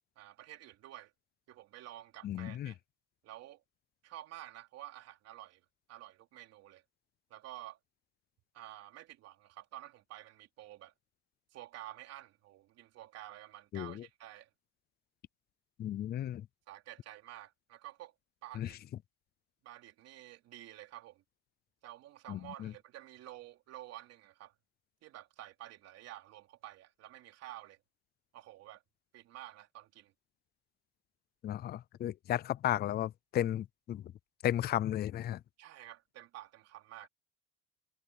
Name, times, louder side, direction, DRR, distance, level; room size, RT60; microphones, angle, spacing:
voice 1, 0.1-1.1 1.5-2.8 3.2-3.6 4.0-6.8 7.3-7.8 8.5-10.9 11.5-14.5 16.7-18.1 18.4-18.8 19.6-21.2 21.8-24.5 25.0-27.8 28.3-28.8 29.1-30.1 35.6-37.1, right 14 dB, 60° right, 3.4 m, -50 dB
voice 2, 2.2-2.7 13.7-14.1 15.8-16.5 18.5-18.7 22.3-22.7 31.4-34.1 34.4-35.4, left 12 dB, 35° left, 0.5 m, -34 dB
cardioid pair, 125°, 29 cm